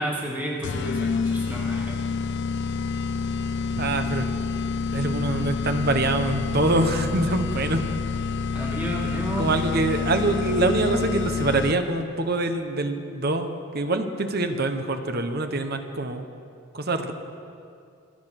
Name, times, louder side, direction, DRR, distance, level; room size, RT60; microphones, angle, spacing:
voice 1, 0.0-2.0 8.5-9.6, right 1 dB, 10° right, -3 dB, 1.9 m, -31 dB
sound 1, 0.6-12.0, left 5 dB, 55° left, 0.4 m, -28 dB
voice 2, 3.8-4.2 4.9-7.8 9.4-16.2 16.7-17.1, right 2 dB, 45° right, 7 dB, 1.1 m, -25 dB
25.5 x 8.7 x 5.9 m, 2.4 s
head